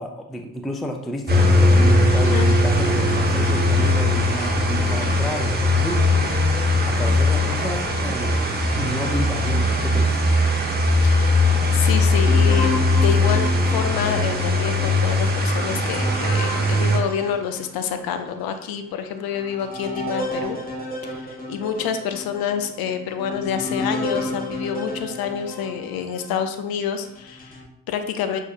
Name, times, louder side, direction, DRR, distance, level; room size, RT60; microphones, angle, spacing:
voice 1, 0.0-6.4 6.8-8.4 8.7-10.2, equal, ahead, 4 dB, 0.4 m, -31 dB
sound 1, 1.3-17.0, left 2 dB, 20° right, 1.0 m, -19 dB
voice 2, 11.7-20.6 21.1-28.4, left 7 dB, 55° left, 8 dB, 0.6 m, -28 dB
sound 2, 12.3-18.0 18.6-18.7 19.2-26.4 27.0-27.6, left 1 dB, 20° left, 1.2 m, -32 dB
6.2 x 2.7 x 2.5 m, 0.77 s
hypercardioid pair, 50°, 45 cm